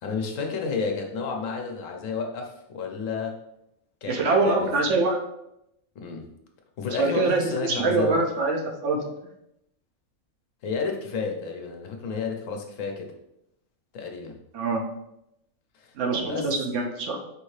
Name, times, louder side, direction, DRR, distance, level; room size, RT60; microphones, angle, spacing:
voice 1, 0.0-3.4 4.0-4.2 4.4-4.7 5.9-6.2 6.8-8.2 10.6-13.1 13.9-14.4 15.7-15.9 16.2-16.5, left 5 dB, 75° left, 2 dB, 1.1 m, -31 dB
voice 2, 4.1-5.2 7.0-8.6 8.8-9.0 14.5-14.8 16.0-17.2, right 3 dB, 70° right, 2 dB, 1.0 m, -24 dB
5.0 x 2.7 x 3.2 m, 0.81 s
omnidirectional pair, 1.4 m